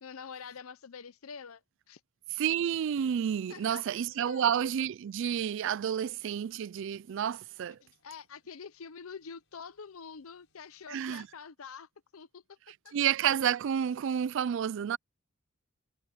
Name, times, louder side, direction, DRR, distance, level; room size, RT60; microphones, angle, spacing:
voice 1, 0.0-1.6 1.9-2.0 3.5-4.5 7.8-12.6 12.8-12.9, left 6 dB, 80° left, 0.7 m, -46 dB
voice 2, 2.3-7.8 10.9-11.3 12.9-15.0, right 9 dB, 60° right, 0.3 m, -30 dB
sound 1, 6.3-11.5, left 3 dB, 60° left, 7.8 m, -78 dB
head